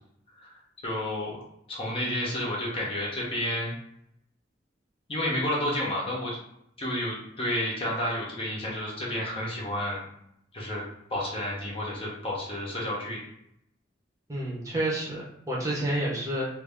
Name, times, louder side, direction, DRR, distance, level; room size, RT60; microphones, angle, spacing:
voice 1, 0.8-1.4 1.7-3.7 5.1-6.4 6.8-10.0 10.5-10.8 11.1-13.2, left 1 dB, 30° left, -5 dB, 0.9 m, -30 dB
voice 2, 14.3-16.5, right 1 dB, 20° right, -5 dB, 0.9 m, -29 dB
2.6 x 2.6 x 3.5 m, 0.75 s
head